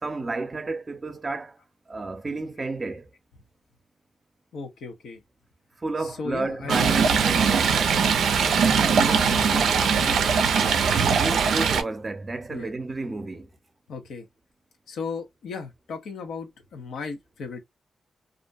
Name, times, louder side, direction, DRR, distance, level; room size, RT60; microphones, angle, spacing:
voice 1, 0.0-1.6 1.9-3.1 5.8-8.0 11.2-13.5, right 3 dB, 35° right, 0.6 m, -32 dB
voice 2, 4.5-5.2 6.0-6.9 8.6-10.4 12.5-12.7 13.9-14.3 14.9-17.6, left 4 dB, 85° left, 0.7 m, -36 dB
Stream, 6.7-11.8, right 6 dB, 85° right, 0.4 m, -21 dB
2.5 x 2.1 x 2.4 m
cardioid pair, 60°, 0 cm